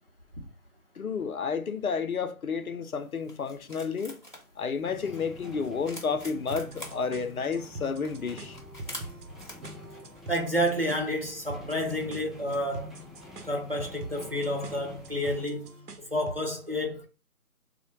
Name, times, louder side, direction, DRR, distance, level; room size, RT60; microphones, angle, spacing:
voice 1, 1.0-4.2 4.6-8.6, left 5 dB, 70° left, 0.6 m, -31 dB
sound 1, 2.9-15.8, left 1 dB, 35° left, 0.7 m, -50 dB
sound 2, 4.8-15.5, left 2 dB, ahead, 0.4 m, -49 dB
sound 3, 6.5-16.5, right 2 dB, 80° right, 0.8 m, -44 dB
voice 2, 10.0-12.9 13.4-15.7 16.1-17.1, equal, 40° right, 0.6 m, -30 dB
3.3 x 2.1 x 3.0 m
figure-of-eight pair, 175°, 45 cm